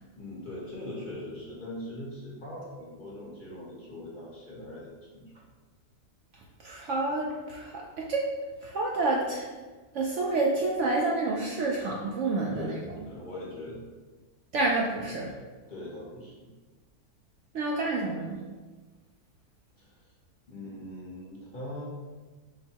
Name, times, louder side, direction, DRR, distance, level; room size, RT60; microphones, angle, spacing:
voice 1, 0.2-4.9 5.1-5.3 12.5-13.8 15.7-16.5 19.8-20.0 20.5-21.9, left 1 dB, 40° left, -5 dB, 0.9 m, -41 dB
voice 2, 6.3-8.3 8.6-9.5 9.9-12.8 14.5-15.4 17.5-18.4, right 2 dB, 65° right, -2 dB, 0.7 m, -29 dB
5.0 x 2.1 x 4.4 m, 1.3 s
omnidirectional pair, 1.6 m